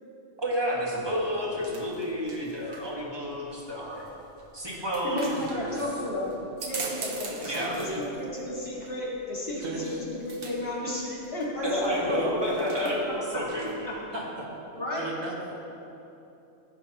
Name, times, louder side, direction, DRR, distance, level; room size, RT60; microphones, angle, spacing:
voice 1, 0.4-4.1 4.5-5.7 7.4-8.0 11.6-13.9, equal, 20° right, -4 dB, 1.6 m, -30 dB
sound 1, 1.0-13.9, right 3 dB, 50° right, 1.1 m, -44 dB
voice 2, 5.0-12.2 12.8-12.9 14.8-15.1, left 1 dB, 50° left, -6 dB, 2.3 m, -33 dB
voice 3, 7.5-8.0 9.6-9.9 12.1-12.3 14.1-14.2 15.0-15.5, right 2 dB, 85° right, -3 dB, 1.9 m, -34 dB
15.5 x 7.8 x 3.0 m, 2.9 s
omnidirectional pair, 1.3 m